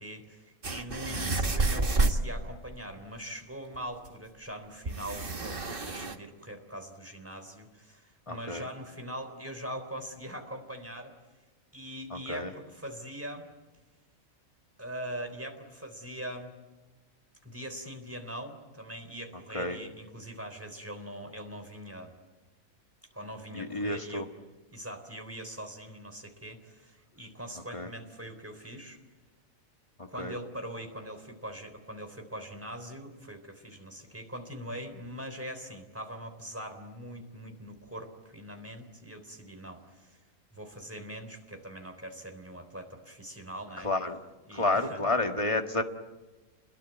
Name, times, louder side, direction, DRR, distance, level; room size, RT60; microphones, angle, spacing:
voice 1, 0.0-11.1 11.7-13.5 14.8-16.5 17.4-22.1 23.1-24.3 24.7-29.0 30.1-40.2 40.5-43.9 44.5-45.0, equal, 10° right, 5 dB, 3.7 m, -42 dB
sound 1, 0.6-2.3 3.7-3.8 4.1-4.2 4.9-6.2, right 2 dB, 40° right, 1.7 m, -29 dB
voice 2, 1.1-1.4 8.3-8.7 12.1-12.5 19.5-19.8 23.5-24.3 27.7-27.9 30.0-30.3 43.8-44.2 44.5-45.8, left 2 dB, 25° left, 5 dB, 1.8 m, -31 dB
29.5 x 21.5 x 9.2 m, 1.2 s
omnidirectional pair, 1.5 m